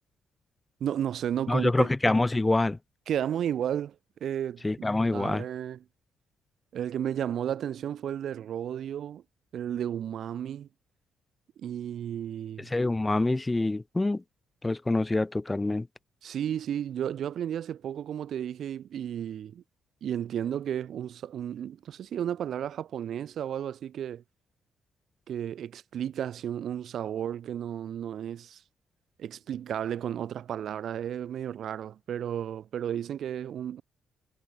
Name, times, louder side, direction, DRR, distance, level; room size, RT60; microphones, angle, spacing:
voice 1, 0.8-1.9 3.1-5.8 6.7-9.2 9.5-10.7 11.6-12.7 16.2-19.6 20.0-24.2 25.3-28.6 29.2-33.8, right 9 dB, 65° right, 6.2 m, -33 dB
voice 2, 1.5-2.8 4.6-5.4 12.6-14.2 14.6-15.9, left 2 dB, 15° left, 3.7 m, -26 dB
cardioid pair, 90°, 0 cm